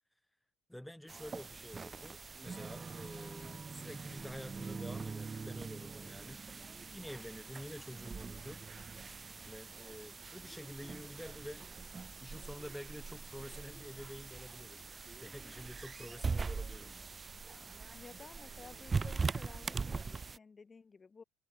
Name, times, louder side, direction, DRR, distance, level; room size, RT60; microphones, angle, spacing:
voice 1, 0.7-8.7 9.4-11.7 12.2-14.9 15.2-17.1, left 1 dB, 5° left, 2.5 m, -49 dB
sound 1, 1.1-20.4, right 4 dB, 25° right, 0.3 m, -42 dB
voice 2, 17.9-21.2, left 4 dB, 25° left, 2.7 m, -54 dB
hypercardioid pair, 65°, 0 cm